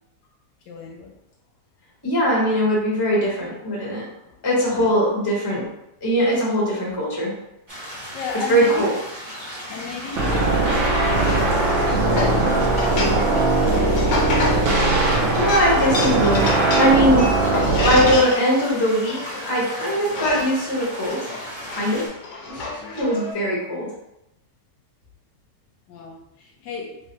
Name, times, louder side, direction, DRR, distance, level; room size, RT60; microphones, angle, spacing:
voice 1, 0.7-1.1 4.1-5.0 7.9-9.0 9.3-14.3 25.9-27.0, left 5 dB, 75° left, 0 dB, 1.2 m, -35 dB
voice 2, 2.0-4.0 4.4-5.7 6.0-7.3 8.5-8.9 14.4-14.8 15.4-17.3 17.6-21.3 21.7-22.1 22.4-22.7 22.9-23.9, equal, 20° left, -5 dB, 0.8 m, -21 dB
sound 1, 7.7-22.1, equal, 20° right, 0.8 m, -36 dB
sound 2, 10.2-18.2, right 2 dB, 60° right, 0.8 m, -20 dB
sound 3, 11.1-23.3, left 2 dB, 60° left, 0.8 m, -30 dB
3.4 x 3.3 x 2.8 m, 0.86 s
omnidirectional pair, 2.0 m